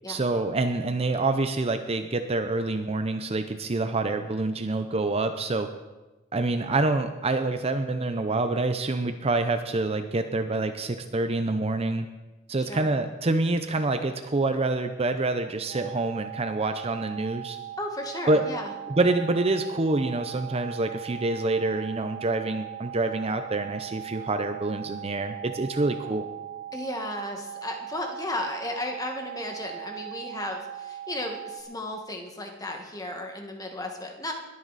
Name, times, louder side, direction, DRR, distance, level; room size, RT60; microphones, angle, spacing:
voice 1, 0.1-5.7 6.3-12.1 12.5-17.6 18.3-18.5 18.9-26.3, right 2 dB, 30° right, 8 dB, 0.6 m, -26 dB
sound 1, 15.7-31.6, right 11 dB, 70° right, 1.5 m, -39 dB
voice 2, 17.8-18.7 26.7-34.3, left 1 dB, 20° left, 3 dB, 1.6 m, -34 dB
21.0 x 9.6 x 4.1 m, 1.1 s
head